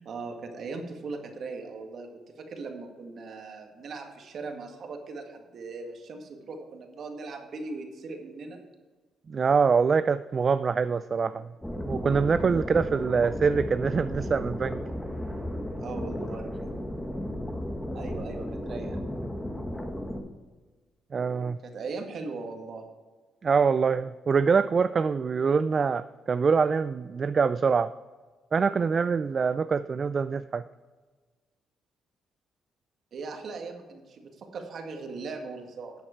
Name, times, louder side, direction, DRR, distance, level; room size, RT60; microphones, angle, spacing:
voice 1, 0.0-8.6 15.8-16.5 17.9-19.0 21.6-22.8 33.1-35.9, right 4 dB, 60° right, 4 dB, 1.9 m, -39 dB
voice 2, 9.3-11.5 11.9-14.8 21.1-21.6 23.4-27.9 28.5-30.6, right 5 dB, 40° right, 13 dB, 0.3 m, -24 dB
sound 1, 11.6-20.2, left 1 dB, 10° left, 1.5 m, -34 dB
12.0 x 7.8 x 4.5 m, 1.3 s
cardioid pair, 90°, 0 cm